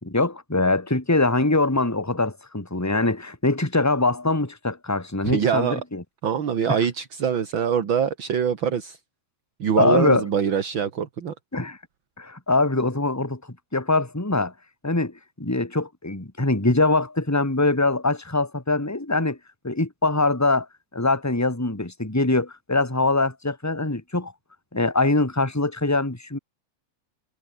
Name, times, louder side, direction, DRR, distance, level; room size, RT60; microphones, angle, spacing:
voice 1, 0.0-6.0 6.7-6.8 9.8-10.2 11.5-11.8 12.2-13.4 13.7-14.5 14.8-19.4 19.6-20.7 20.9-24.3 24.7-26.4, left 2 dB, 5° left, 3.0 m, -23 dB
voice 2, 5.2-5.8 6.2-9.0 9.6-11.3, right 7 dB, 40° right, 2.2 m, -24 dB
omnidirectional pair, 3.9 m